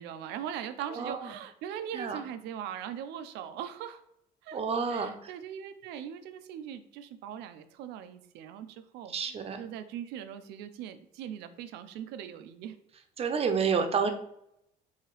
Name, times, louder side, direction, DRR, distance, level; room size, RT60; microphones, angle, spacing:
voice 1, 0.0-4.0 4.4-4.6 4.9-12.8, right 9 dB, 85° right, 11 dB, 0.5 m, -40 dB
voice 2, 0.9-1.3 1.9-2.2 4.5-5.3 9.1-9.6 13.2-14.1, right 5 dB, 35° right, 7 dB, 0.6 m, -29 dB
4.8 x 2.7 x 3.1 m, 0.75 s
cardioid pair, 110°, 17 cm